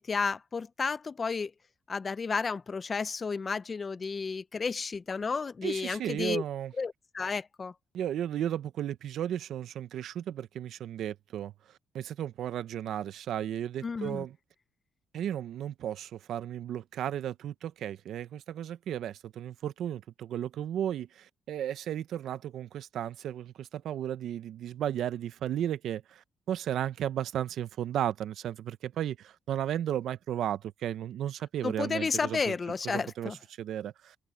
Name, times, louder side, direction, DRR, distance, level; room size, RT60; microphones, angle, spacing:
voice 1, 0.1-1.5 1.9-6.4 6.8-7.7 13.8-14.2 31.6-33.4, left 5 dB, 35° left, 0.8 m, -32 dB
voice 2, 5.6-6.7 7.9-11.5 11.9-14.3 15.1-32.5 32.8-34.1, right 10 dB, 75° right, 0.8 m, -34 dB
open air
cardioid pair, 90°, 0 cm